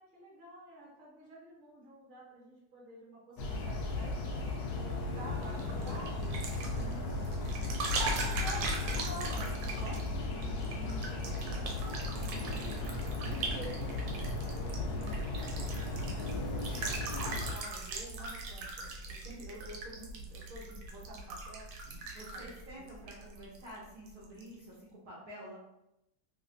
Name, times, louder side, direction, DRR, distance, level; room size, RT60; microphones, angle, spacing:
voice 1, 0.0-6.4 8.1-10.3 10.7-11.7 13.2-14.0 14.4-21.7 22.3-22.8, right 1 dB, 30° right, -5 dB, 1.1 m, -49 dB
sound 1, 3.4-17.5, left 2 dB, 65° left, 1.0 m, -36 dB
sound 2, 5.4-23.8 24.1-24.5, right 1 dB, 85° right, 1.4 m, -39 dB
voice 2, 6.7-7.2 10.7-11.2 12.2-12.5 22.1-25.6, equal, 65° right, -6 dB, 1.1 m, -49 dB
3.2 x 3.1 x 2.5 m, 0.84 s
omnidirectional pair, 2.0 m